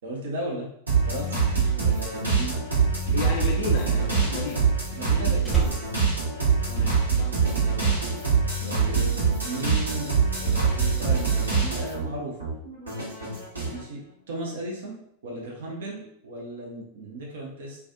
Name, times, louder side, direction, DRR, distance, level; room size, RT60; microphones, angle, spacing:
voice 1, 0.0-0.7 1.1-1.4 1.8-2.6 5.0-5.9 7.6-7.9 8.6-10.1 10.4-12.4 13.6-17.8, right 1 dB, 60° right, -2 dB, 0.6 m, -36 dB
sound 1, 0.9-12.1 12.4-13.8, right 5 dB, 80° right, 1.0 m, -24 dB
voice 2, 3.1-4.7 6.7-7.4, left 5 dB, 50° left, 0 dB, 0.3 m, -33 dB
Slam, 3.4-7.2 7.5-7.9, left 1 dB, 10° right, 0.8 m, -35 dB
2.4 x 2.2 x 2.5 m, 0.73 s
figure-of-eight pair, 90°, 0 cm